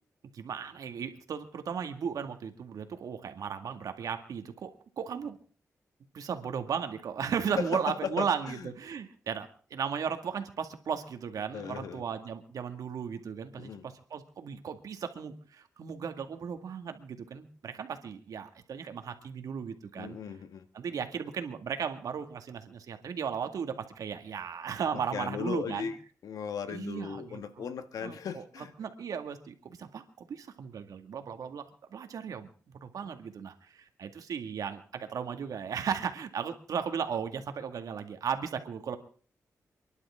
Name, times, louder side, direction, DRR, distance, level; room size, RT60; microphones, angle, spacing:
voice 1, 0.3-4.7 5.0-5.4 6.1-20.2 20.7-25.9 26.7-27.4 28.0-28.4 28.8-31.6 31.9-32.5 32.8-39.0, right 7 dB, 80° right, 7 dB, 2.0 m, -36 dB
voice 2, 7.5-8.7 11.5-12.0 13.6-13.9 19.9-20.6 25.1-26.0 26.2-28.7 33.0-33.1, left 6 dB, 85° left, 10 dB, 1.5 m, -37 dB
28.0 x 11.0 x 3.7 m, 0.43 s
cardioid pair, 65°, 6 cm